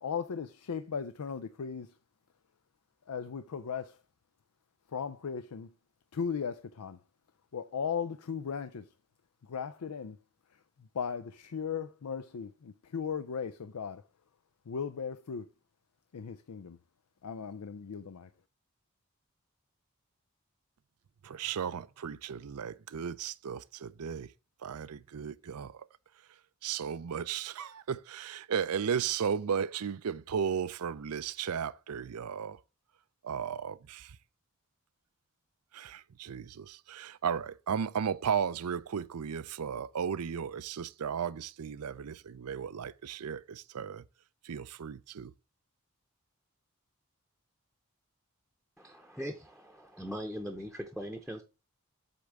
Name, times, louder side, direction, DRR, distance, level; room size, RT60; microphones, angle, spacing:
voice 1, 0.0-2.0 3.1-4.0 4.9-5.7 6.1-7.0 7.5-8.9 9.4-10.2 10.8-14.0 14.7-15.5 16.1-16.8 17.2-18.3, left 6 dB, 90° left, 0.5 m, -37 dB
voice 2, 21.2-24.3 24.6-25.9 26.6-32.6 33.2-34.2 35.7-44.0 44.4-45.3, right 7 dB, 85° right, 0.5 m, -35 dB
voice 3, 48.8-51.4, equal, ahead, 0.7 m, -40 dB
8.2 x 3.5 x 6.4 m
head